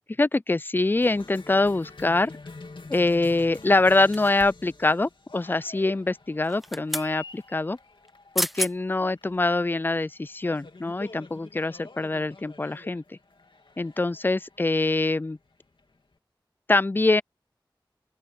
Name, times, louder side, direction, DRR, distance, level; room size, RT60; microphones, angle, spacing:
voice 1, 0.2-2.3 2.9-7.8 8.4-13.2 13.8-15.4 16.7-17.2, left 2 dB, 25° left, 0.4 m, -24 dB
Cheering, 1.0-16.1, left 3 dB, 75° left, 2.5 m, -47 dB
sound 1, 4.1-4.7 6.4-7.1 8.1-8.2 8.4-8.7 9.3-9.4, equal, ahead, 1.1 m, -31 dB
open air
wide cardioid pair, 50°, 9 cm